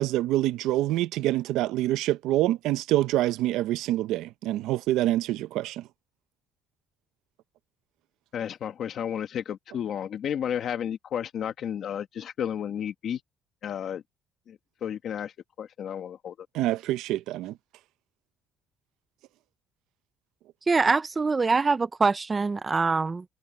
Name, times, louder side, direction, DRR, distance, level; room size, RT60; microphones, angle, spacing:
voice 1, 0.0-5.8 16.5-17.5, right 15 dB, 85° right, 0.7 m, -26 dB
voice 2, 8.3-13.2 13.6-14.0 14.5-16.7, left 9 dB, 50° left, 1.3 m, -32 dB
voice 3, 20.7-23.2, right 4 dB, 20° right, 0.4 m, -24 dB
cardioid pair, 150°, 0 cm